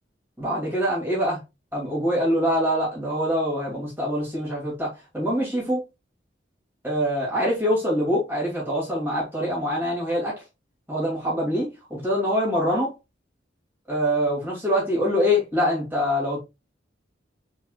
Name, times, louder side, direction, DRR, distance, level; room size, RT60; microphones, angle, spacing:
voice 1, 0.4-1.4 1.7-5.8 6.8-10.3 10.9-12.9 13.9-16.4, equal, 10° right, 2.7 m, -24 dB
4.8 x 4.5 x 2.4 m
head